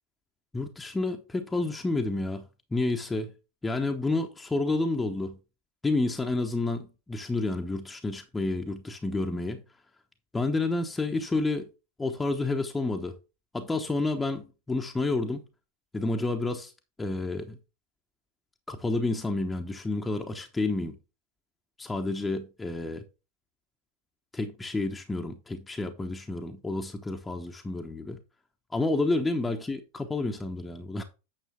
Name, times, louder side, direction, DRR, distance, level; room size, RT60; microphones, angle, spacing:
voice 1, 0.5-2.5 2.7-3.3 3.6-5.4 5.8-9.6 10.3-11.7 12.0-13.2 13.5-15.4 15.9-16.7 17.0-17.6 18.7-21.0 21.8-23.0 24.3-28.2 28.7-29.8 30.1-31.0, left 2 dB, 10° left, 1.0 m, -29 dB
9.2 x 6.6 x 3.5 m
figure-of-eight pair, 90°, 0 cm